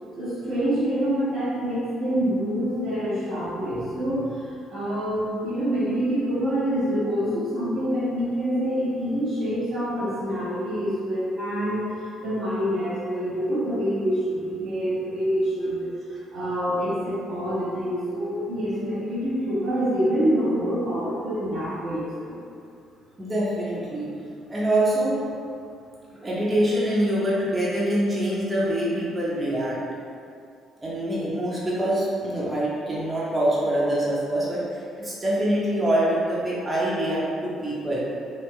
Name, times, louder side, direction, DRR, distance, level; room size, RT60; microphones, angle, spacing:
voice 1, 0.2-4.4 4.7-11.9 12.2-15.9 16.3-22.4, equal, 50° right, -10 dB, 0.8 m, -26 dB
voice 2, 3.8-4.1 23.2-24.1 24.5-25.2 26.1-29.8 30.8-38.0, right 1 dB, 20° right, -8 dB, 0.8 m, -25 dB
3.0 x 2.8 x 2.2 m, 2.4 s
hypercardioid pair, 50°, 0 cm